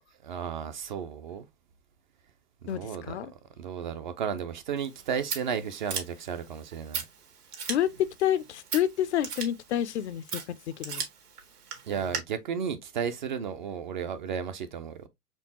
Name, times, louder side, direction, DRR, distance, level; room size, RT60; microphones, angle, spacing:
voice 1, 0.2-1.4 2.7-7.0 11.9-15.1, right 7 dB, 35° right, 0.4 m, -34 dB
voice 2, 2.6-3.3 7.7-7.9 8.2-11.0, left 11 dB, 50° left, 0.5 m, -29 dB
Scissors, 4.8-12.2, right 6 dB, 80° right, 1.6 m, -39 dB
4.4 x 3.4 x 2.8 m
hypercardioid pair, 120°, 45 cm